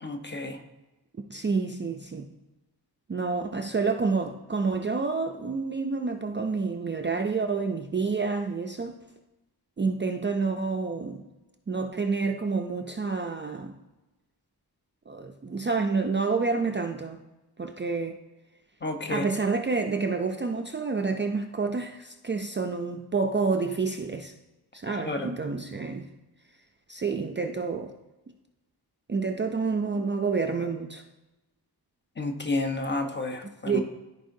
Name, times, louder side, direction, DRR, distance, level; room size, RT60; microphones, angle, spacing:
voice 1, 0.0-0.6 18.8-19.3 25.0-25.3 32.2-33.8, left 2 dB, 25° left, 5 dB, 0.8 m, -31 dB
voice 2, 1.3-2.3 3.1-9.0 9.8-11.2 11.7-13.8 15.1-17.2 17.6-18.2 19.1-24.3 24.7-26.1 26.9-27.9 29.1-31.0 33.6-33.8, right 4 dB, 30° right, 4 dB, 0.4 m, -28 dB
13.5 x 4.6 x 2.7 m, 1.1 s
wide cardioid pair, 135°, 40 cm